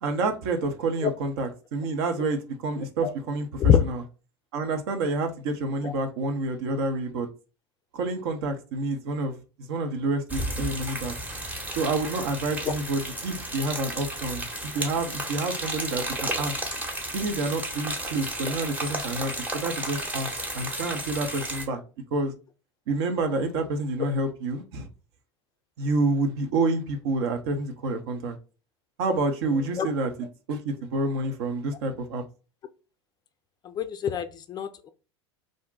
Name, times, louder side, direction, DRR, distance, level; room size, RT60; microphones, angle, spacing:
voice 1, 0.0-4.0 4.5-7.3 7.9-9.4 9.7-11.2 11.8-16.5 17.1-20.3 20.5-21.8 22.1-22.3 22.9-24.9 25.8-28.4 29.0-30.1 30.5-32.2, right 2 dB, 60° right, 0.7 m, -28 dB
sound 1, 10.3-21.7, right 1 dB, 10° right, 0.8 m, -33 dB
voice 2, 33.6-34.9, left 8 dB, 30° left, 0.3 m, -24 dB
2.5 x 2.1 x 3.7 m
figure-of-eight pair, 80°, 15 cm